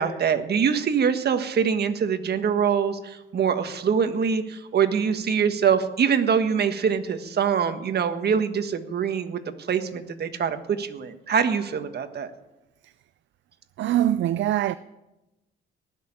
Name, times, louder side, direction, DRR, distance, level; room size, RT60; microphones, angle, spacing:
voice 1, 0.0-9.4 9.7-12.3, right 7 dB, 55° right, 1.5 m, -24 dB
voice 2, 13.8-14.7, right 12 dB, 70° right, 0.5 m, -23 dB
19.0 x 6.8 x 10.0 m
cardioid pair, 90°, 20 cm